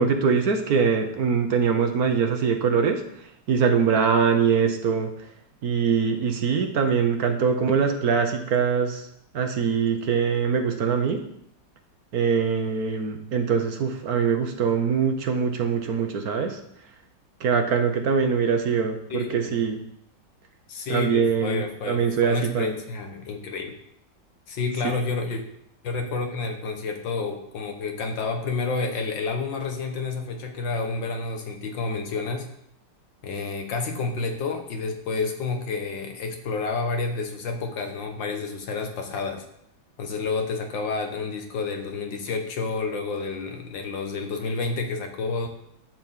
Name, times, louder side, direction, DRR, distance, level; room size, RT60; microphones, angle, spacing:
voice 1, 0.0-5.1 5.6-9.1 9.3-11.2 12.1-16.6 17.4-19.8 20.9-22.7 24.8-24.9, right 6 dB, 60° right, 5 dB, 1.3 m, -23 dB
voice 2, 19.1-19.6 20.7-23.7 24.5-25.4 25.8-32.5 33.2-39.4 40.0-45.5, left 4 dB, 80° left, 4 dB, 2.0 m, -29 dB
11.5 x 4.2 x 7.3 m, 0.73 s
omnidirectional pair, 2.0 m